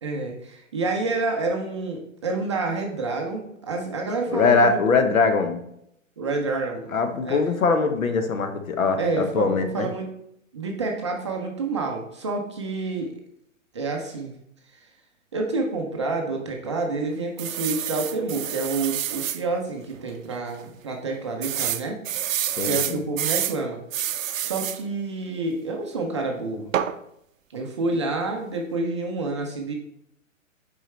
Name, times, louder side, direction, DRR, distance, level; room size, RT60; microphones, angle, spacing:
voice 1, 0.0-4.8 6.2-6.9 7.2-7.4 9.0-10.2 10.5-13.1 13.7-14.4 14.7-14.9 15.3-22.0 22.6-26.7 27.5-29.7, right 3 dB, 25° right, 1 dB, 0.4 m, -28 dB
voice 2, 4.3-5.6 6.9-9.9 22.6-23.0, left 4 dB, 80° left, 7 dB, 1.1 m, -22 dB
sound 1, 17.4-19.4 19.9-20.0 20.3-20.4 21.4-23.6 23.9-24.8 26.7-27.0, right 11 dB, 75° right, 0.6 m, -28 dB
6.3 x 4.6 x 3.2 m, 0.76 s
hypercardioid pair, 150°, 40 cm